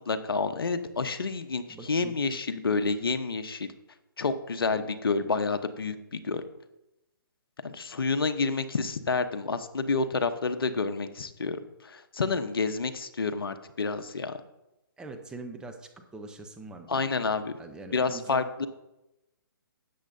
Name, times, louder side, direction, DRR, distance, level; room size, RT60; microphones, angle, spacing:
voice 1, 0.1-1.6 1.9-3.7 4.2-6.4 7.6-14.4 16.9-17.6 17.9-18.7, left 4 dB, 75° left, 10 dB, 0.9 m, -29 dB
voice 2, 1.7-2.2 15.0-17.1 17.6-18.7, right 3 dB, 5° right, 4 dB, 0.7 m, -43 dB
13.0 x 8.6 x 2.7 m, 0.94 s
hypercardioid pair, 140°, 12 cm